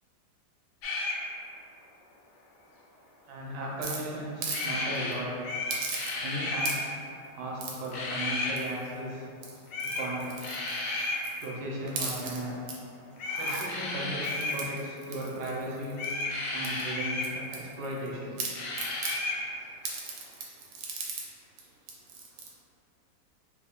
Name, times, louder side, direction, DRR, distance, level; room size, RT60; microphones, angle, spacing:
sound 1, 0.8-1.2 4.5-5.1 5.4-6.8 7.9-8.6 9.7-10.1 10.4-11.2 13.2-14.6 15.9-17.3 18.5-19.4, left 2 dB, 75° left, 1.1 m, -32 dB
voice 1, 3.3-5.4 6.2-6.9 7.3-9.3 9.9-10.6 11.4-12.6 13.4-16.0 16.5-18.4, right 1 dB, 70° right, -4 dB, 1.3 m, -36 dB
sound 2, 3.8-4.7 5.0-5.1 5.7-6.3 6.6-7.0 7.6-7.9 8.6-9.0 9.3-11.5 11.9-12.8 13.2-13.7 14.2-16.2 16.6-18.1 18.4-19.2 19.8-21.3 21.6-21.7 21.9-22.5, right 4 dB, 90° right, 1.3 m, -38 dB
3.7 x 2.2 x 3.5 m, 2.5 s
omnidirectional pair, 1.9 m